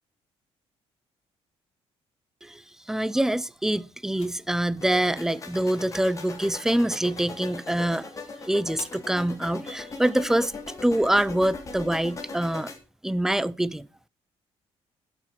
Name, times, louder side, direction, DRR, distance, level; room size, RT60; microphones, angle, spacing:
voice 1, 2.9-8.1 8.4-10.5 10.8-12.7 13.0-13.9, right 1 dB, 5° right, 0.4 m, -25 dB
sound 1, 3.9-9.6, left 7 dB, 75° left, 2.6 m, -53 dB
sound 2, 4.8-12.8, left 3 dB, 30° left, 1.9 m, -40 dB
12.0 x 6.1 x 4.6 m
cardioid pair, 125°, 11 cm